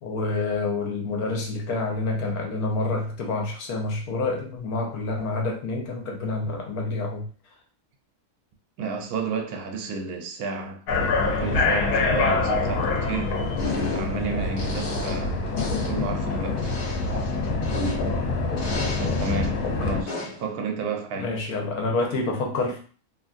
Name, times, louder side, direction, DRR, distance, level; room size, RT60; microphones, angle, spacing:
voice 1, 0.0-7.3 21.1-22.8, left 3 dB, 75° left, 1.2 m, -28 dB
voice 2, 8.8-13.4 13.9-15.5 15.8-16.7 19.0-21.4, right 4 dB, 75° right, 1.0 m, -32 dB
sound 1, 10.9-20.0, left 3 dB, 90° left, 1.1 m, -25 dB
sound 2, 13.6-14.2 14.6-15.3 15.6-16.0 16.6-18.2 18.6-19.5 20.1-20.5, left 2 dB, 40° left, 1.0 m, -33 dB
2.7 x 2.5 x 2.4 m
omnidirectional pair, 1.6 m